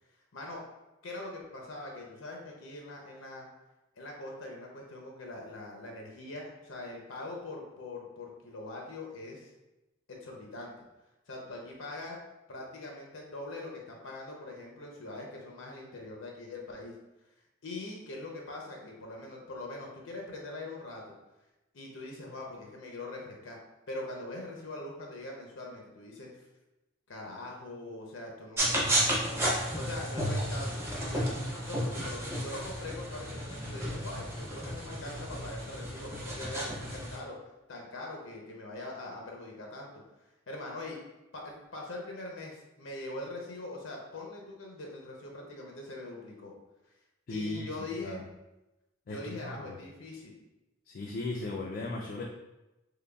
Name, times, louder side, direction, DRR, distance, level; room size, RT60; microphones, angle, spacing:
voice 1, 0.3-0.6 1.0-3.5 4.0-9.5 10.1-10.7 11.3-12.2 12.5-16.9 17.6-21.2 21.7-23.6 23.9-26.5 27.1-37.4 37.7-39.9 40.5-41.0 41.3-46.5 47.3-48.2 49.1-50.4, left 2 dB, 80° left, 0 dB, 0.6 m, -42 dB
sound 1, 28.6-37.2, equal, 15° right, 0.6 m, -33 dB
voice 2, 47.3-47.7 48.0-48.3 49.1-49.8 50.9-52.2, left 2 dB, 45° left, -1 dB, 0.3 m, -37 dB
3.8 x 3.3 x 2.3 m, 0.99 s
head